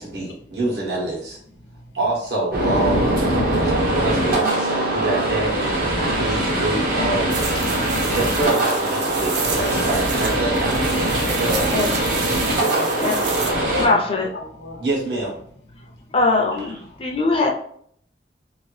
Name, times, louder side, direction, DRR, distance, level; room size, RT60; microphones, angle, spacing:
voice 1, 0.0-1.4 1.9-3.1 3.9-5.8 6.1-7.4 8.1-10.8 11.2-11.8 14.8-15.3 16.6-16.7, right 2 dB, 70° right, -3 dB, 1.2 m, -26 dB
sound 1, 2.5-13.9, right 1 dB, 55° right, 0.8 m, -22 dB
Keyboard (musical), 4.4-6.4, right 5 dB, 25° right, 0.6 m, -38 dB
sound 2, 7.3-13.5, right 5 dB, 90° right, 0.6 m, -31 dB
voice 2, 7.5-8.2 9.6-9.7 11.2-12.2 12.6-14.0 14.3-14.9 15.8-15.9, left 3 dB, 75° left, 2 dB, 0.7 m, -33 dB
voice 3, 13.0-13.5 13.8-14.3 16.1-17.5, left 3 dB, 30° left, 0 dB, 0.5 m, -21 dB
2.8 x 2.5 x 3.1 m, 0.64 s
head